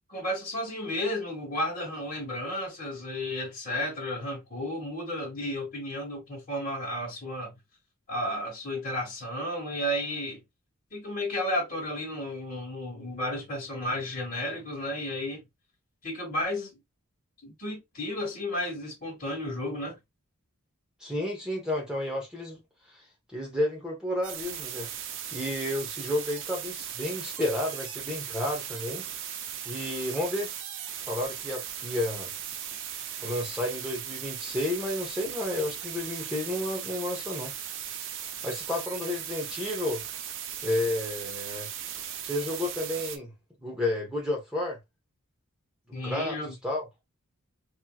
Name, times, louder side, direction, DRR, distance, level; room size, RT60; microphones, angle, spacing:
voice 1, 0.1-7.5 8.1-10.4 10.9-15.4 16.0-16.7 17.4-20.0 45.9-46.5, left 1 dB, 40° left, 1.4 m, -33 dB
voice 2, 21.0-22.6 23.3-24.9 25.3-29.1 29.7-30.5 31.1-32.3 33.2-37.5 38.4-40.0 40.6-41.7 42.2-43.3 43.6-44.8 46.0-46.4 46.6-46.8, left 1 dB, 5° right, 0.9 m, -31 dB
sound 1, 24.2-43.2, right 9 dB, 60° right, 0.5 m, -38 dB
3.1 x 2.7 x 2.3 m
head